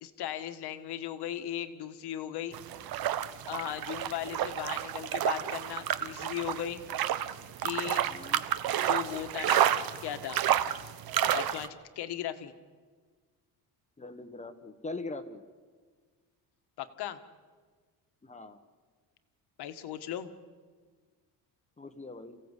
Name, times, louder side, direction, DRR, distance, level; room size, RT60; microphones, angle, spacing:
voice 1, 0.0-2.6 3.5-6.8 7.6-8.0 8.8-9.7 10.0-10.4 11.3-12.5 16.8-17.2 19.6-20.3, left 11 dB, 70° left, 9 dB, 1.7 m, -37 dB
sound 1, 2.5-11.7, right 11 dB, 60° right, 1.0 m, -30 dB
voice 2, 8.1-8.4 14.0-15.4 18.2-18.6 21.8-22.4, left 2 dB, 15° left, 9 dB, 1.1 m, -42 dB
29.0 x 16.0 x 8.3 m, 1.5 s
cardioid pair, 150°, 41 cm